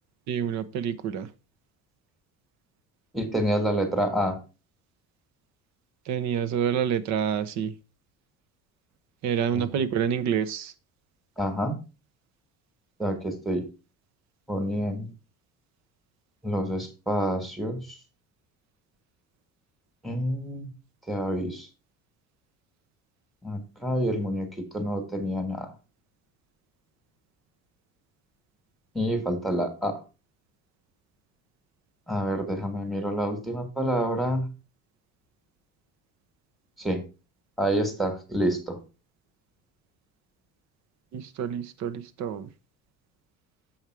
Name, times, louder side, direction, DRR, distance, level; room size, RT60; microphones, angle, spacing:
voice 1, 0.3-1.3 6.1-7.7 9.2-10.7 41.1-42.5, right 8 dB, 60° right, 1.0 m, -28 dB
voice 2, 3.1-4.4 9.5-9.8 11.4-11.8 13.0-13.6 14.5-15.1 16.4-18.0 20.0-20.7 21.1-21.7 23.4-25.7 28.9-30.0 32.1-34.5 36.8-37.0 37.6-38.8, equal, ahead, 1.6 m, -28 dB
7.4 x 5.3 x 4.7 m
cardioid pair, 145°, 31 cm